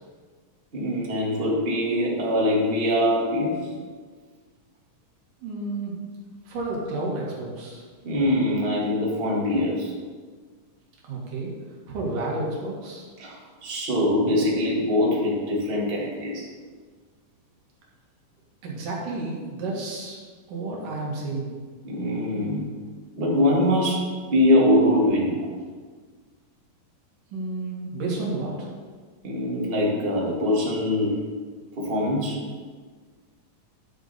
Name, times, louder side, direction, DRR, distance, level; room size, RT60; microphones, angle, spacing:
voice 1, 0.7-3.7 8.0-9.9 13.2-16.5 21.8-22.7 23.2-25.5 29.2-31.2 31.8-32.4, left 1 dB, 30° right, -3 dB, 1.0 m, -23 dB
voice 2, 5.4-5.9 6.5-7.8 11.0-11.5 11.9-13.1 18.6-20.2 20.5-21.6 27.3-28.7, right 2 dB, 75° right, -4 dB, 3.4 m, -31 dB
11.5 x 6.4 x 4.1 m, 1.5 s
omnidirectional pair, 3.8 m